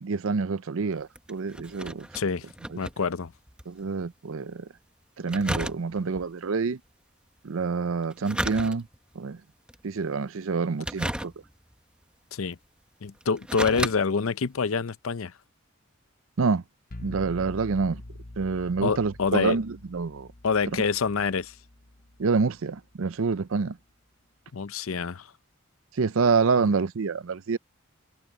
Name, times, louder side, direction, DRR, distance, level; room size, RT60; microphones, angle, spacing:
voice 1, 0.0-2.1 2.7-2.8 3.7-4.7 5.2-6.8 7.4-8.9 9.1-9.4 9.8-11.3 16.4-16.6 17.0-18.0 18.4-20.3 22.2-23.8 25.9-27.6, right 4 dB, 70° right, 0.6 m, -27 dB
sound 1, 0.9-3.7 4.0-4.1 5.3-6.2 8.0-9.1 9.7-10.0 10.8-11.7 12.5-12.6 13.2-14.0 14.4-14.5, right 1 dB, 5° right, 0.9 m, -33 dB
voice 2, 2.1-2.4 2.8-3.3 12.3-12.6 13.0-15.3 18.8-19.6 20.4-21.5 24.5-25.3, left 5 dB, 75° left, 0.6 m, -26 dB
sound 2, 16.9-22.7, left 1 dB, 40° left, 1.0 m, -45 dB
head